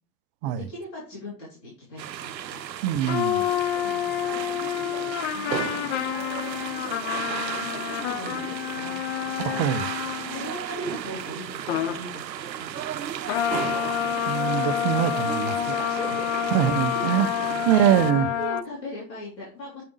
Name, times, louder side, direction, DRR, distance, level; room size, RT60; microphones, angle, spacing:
voice 1, 0.4-3.0 3.8-4.0 4.3-4.7 5.3-6.2 6.5-9.6 10.3-13.0 15.9-16.7 17.1-17.2 17.7-19.8, left 1 dB, 75° left, 3.5 m, -40 dB
sound 1, 2.0-18.1, right 10 dB, 90° right, 0.6 m, -34 dB
voice 2, 2.8-3.5 9.4-9.8 14.3-15.9 16.5-17.3 17.7-18.3, right 11 dB, 35° right, 0.5 m, -23 dB
sound 2, 3.1-10.5 11.7-12.0 13.3-18.6, left 11 dB, 45° left, 0.5 m, -28 dB
7.6 x 5.1 x 3.2 m
hypercardioid pair, 95°, 50 cm